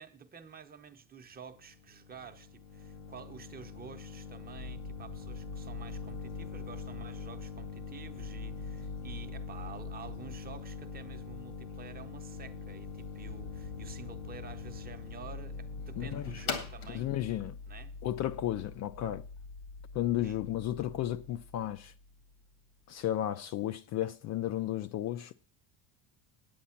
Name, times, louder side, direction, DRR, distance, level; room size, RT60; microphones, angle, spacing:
voice 1, 0.0-17.1 17.7-17.9 20.2-20.4, right 7 dB, 25° right, 0.8 m, -50 dB
sound 1, 1.4-19.0, left 6 dB, 90° left, 2.3 m, -44 dB
sound 2, 4.5-22.5, left 3 dB, 75° left, 1.2 m, -46 dB
voice 2, 16.9-17.6 18.0-19.2 19.9-21.9 22.9-25.3, left 12 dB, 45° left, 0.4 m, -33 dB
9.2 x 8.7 x 5.7 m
cardioid pair, 155°, 39 cm